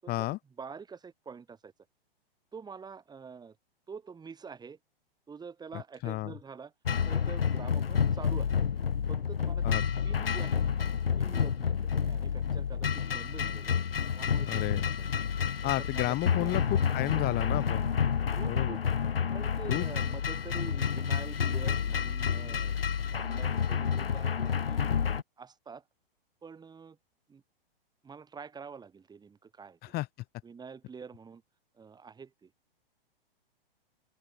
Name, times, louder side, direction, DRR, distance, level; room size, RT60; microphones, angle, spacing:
voice 1, 0.1-0.4 6.0-6.3 9.6-9.8 10.1-10.2 14.5-14.8 15.6-17.9 18.5-18.8 19.7-19.9 29.9-30.1, left 18 dB, 30° left, 6.0 m, -32 dB
voice 2, 0.6-1.7 2.5-3.5 3.9-4.8 5.3-6.7 7.0-8.6 9.1-9.8 10.0-10.7 11.2-13.8 14.2-15.2 15.6-16.6 18.3-18.8 19.3-22.8 23.1-24.9 25.4-25.8 26.4-27.0 27.3-27.4 28.0-29.8 30.4-31.4 31.7-32.5, right 5 dB, 15° right, 6.7 m, -46 dB
sound 1, 6.9-25.2, left 7 dB, 75° left, 3.0 m, -29 dB
open air
figure-of-eight pair, 110°, 30 cm